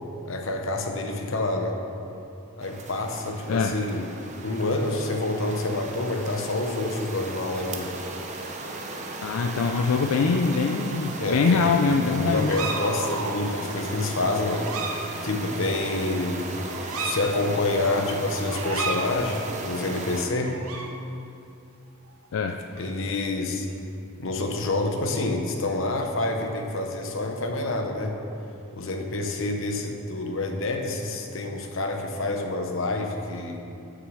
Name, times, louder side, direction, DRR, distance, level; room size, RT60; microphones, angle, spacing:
voice 1, 0.2-1.8 2.6-4.1 4.4-8.0 11.2-11.8 12.0-14.7 15.2-16.5 17.0-20.6 22.8-23.7 24.2-28.2 28.7-33.6, left 2 dB, 60° left, 3 dB, 0.9 m, -27 dB
sound 1, 2.6-20.3, right 2 dB, 30° right, 0.7 m, -36 dB
voice 2, 3.5-3.8 9.2-12.6 22.3-22.6, left 4 dB, 80° left, 5 dB, 0.4 m, -23 dB
sound 2, 10.5-10.6 12.3-13.5 14.5-15.0 15.6-15.8 16.7-17.2 18.5-19.0 20.4-20.9 22.1-22.3 22.6-22.9 26.2-26.9, right 4 dB, 75° right, 0.8 m, -33 dB
7.6 x 6.2 x 6.2 m, 2.6 s
head